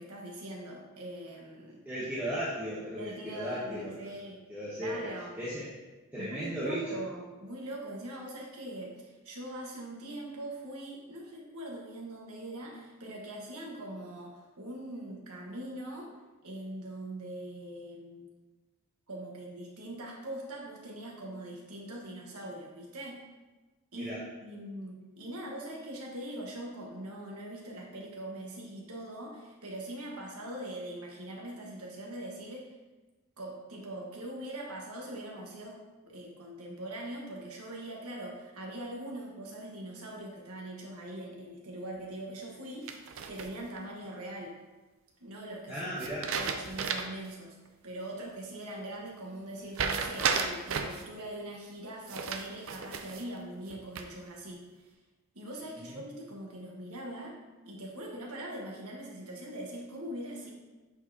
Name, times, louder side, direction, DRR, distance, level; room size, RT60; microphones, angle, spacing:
voice 1, 0.0-1.8 3.0-4.4 4.8-5.3 6.2-16.2 16.4-18.3 19.1-23.2 23.9-32.7 33.4-44.6 45.2-46.0 46.3-47.6 47.8-54.9 55.3-57.4 57.6-60.5, right 1 dB, 85° right, -1 dB, 1.3 m, -42 dB
voice 2, 1.8-3.9 4.5-5.1 5.4-5.7 6.1-7.0 23.9-24.2 45.7-46.3 55.8-56.0, equal, 10° right, -9 dB, 0.9 m, -36 dB
sound 1, 42.9-43.8 46.0-47.3 47.7-47.8 49.7-51.0 52.1-53.3 53.7-54.3, right 5 dB, 65° right, 0.5 m, -33 dB
8.0 x 4.6 x 2.7 m, 1.2 s
head